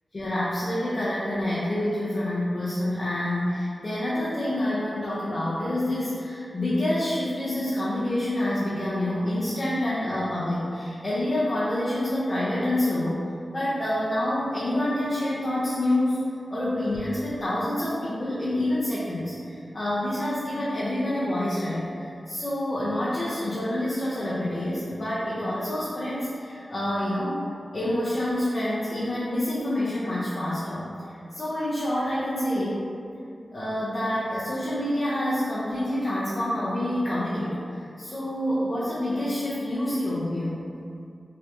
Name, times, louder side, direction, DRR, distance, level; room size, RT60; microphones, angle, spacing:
voice 1, 0.1-13.2 13.5-16.2 16.5-27.4 27.7-32.9 33.5-40.6, left 1 dB, 45° left, -9 dB, 0.6 m, -27 dB
3.2 x 2.4 x 2.8 m, 2.5 s
wide cardioid pair, 65°, 0 cm